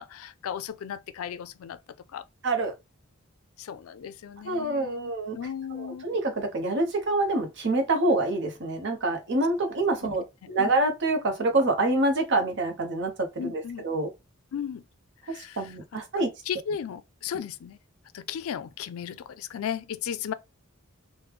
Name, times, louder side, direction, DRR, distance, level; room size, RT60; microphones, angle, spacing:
voice 1, 0.0-1.8 2.1-2.2 3.6-6.1 10.0-10.2 10.6-10.7 13.4-13.8 14.5-14.8 15.2-15.7 16.2-17.8 18.1-20.3, left 8 dB, 80° left, 0.4 m, -36 dB
voice 2, 4.4-5.4 5.8-14.1 15.3-16.3, right 2 dB, 55° right, 0.8 m, -26 dB
3.1 x 2.1 x 3.3 m
head